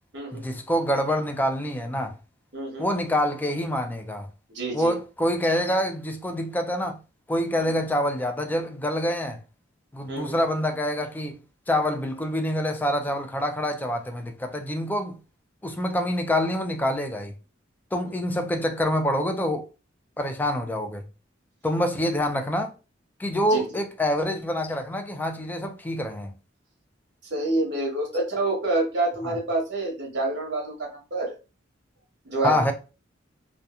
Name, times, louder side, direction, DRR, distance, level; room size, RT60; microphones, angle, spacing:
voice 1, 0.3-2.2 2.8-4.3 4.7-7.0 7.3-9.4 9.9-11.4 11.7-15.2 15.6-17.3 17.9-19.7 20.2-21.0 21.6-22.7 23.2-26.3 29.2-29.3 32.4-32.7, equal, 10° left, 0.3 m, -26 dB
voice 2, 2.5-2.9 4.5-4.9 7.6-7.7 10.1-10.3 18.0-18.1 23.5-23.6 27.3-31.3 32.2-32.6, right 2 dB, 60° right, 1.0 m, -27 dB
2.8 x 2.1 x 2.4 m
head